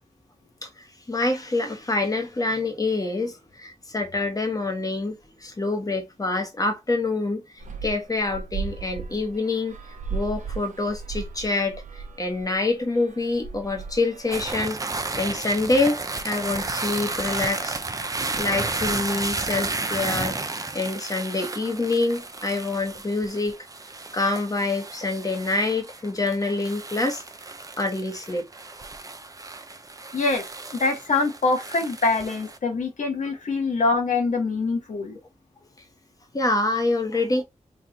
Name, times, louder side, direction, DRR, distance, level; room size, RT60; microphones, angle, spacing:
voice 1, 0.6-7.4 7.8-9.8 10.1-14.8 15.2-17.8 18.4-20.4 20.7-23.6 24.1-27.2 27.8-28.5 36.3-37.4, left 2 dB, 30° left, 1.0 m, -26 dB
sound 1, 7.6-14.5, right 5 dB, 75° right, 0.7 m, -36 dB
sound 2, 14.3-32.6, right 3 dB, 30° right, 0.5 m, -33 dB
voice 2, 30.1-30.4 30.7-35.2, left 3 dB, 80° left, 1.0 m, -24 dB
3.7 x 2.4 x 2.8 m
wide cardioid pair, 70°, 13 cm